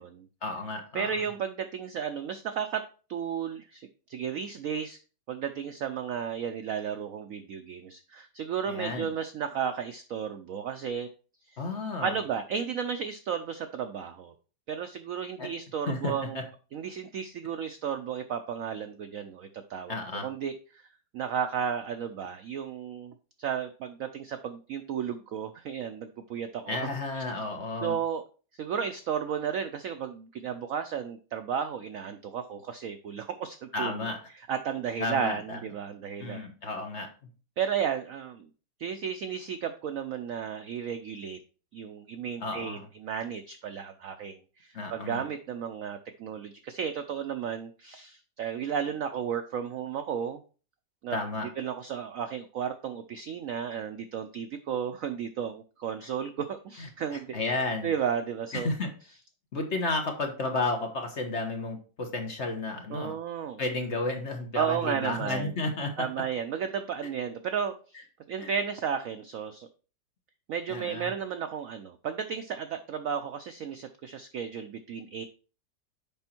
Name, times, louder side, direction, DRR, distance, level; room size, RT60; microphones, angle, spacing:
voice 1, 0.4-1.1 8.7-9.1 11.6-12.2 15.4-15.5 15.9-16.4 19.9-20.3 26.7-28.0 33.7-34.2 35.0-35.6 36.2-37.1 42.4-42.9 44.7-45.2 51.1-51.5 56.8-57.9 58.5-58.9 59.5-63.1 63.6-66.1 68.4-68.5 70.7-71.1, left 2 dB, 45° left, 4 dB, 1.3 m, -32 dB
voice 2, 0.9-2.8 3.1-5.0 5.3-11.1 11.5-11.6 12.0-14.3 14.7-16.4 16.7-20.0 20.2-20.8 21.1-23.1 23.4-26.9 27.1-27.2 27.8-28.2 28.6-34.0 34.5-36.4 37.6-38.5 38.8-41.4 41.7-50.4 51.0-51.2 51.6-57.3 57.8-58.7 62.9-63.6 64.6-65.5 66.0-68.0 68.3-69.7 70.5-75.2, right 7 dB, 70° right, 9 dB, 0.8 m, -33 dB
6.9 x 5.3 x 4.3 m, 0.37 s
omnidirectional pair, 2.0 m